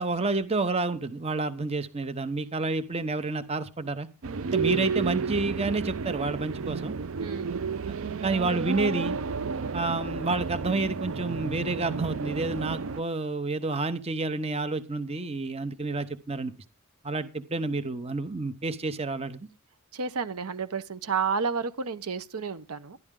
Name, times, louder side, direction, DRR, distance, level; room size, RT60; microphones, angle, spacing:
voice 1, 0.0-4.1 4.5-6.9 8.2-9.2 9.7-16.5 17.0-19.4, right 3 dB, 25° right, 0.8 m, -29 dB
sound 1, 4.2-13.0, right 5 dB, 60° right, 0.5 m, -31 dB
voice 2, 7.2-7.6 19.9-23.0, right 5 dB, 85° right, 0.8 m, -31 dB
12.0 x 11.5 x 3.7 m
head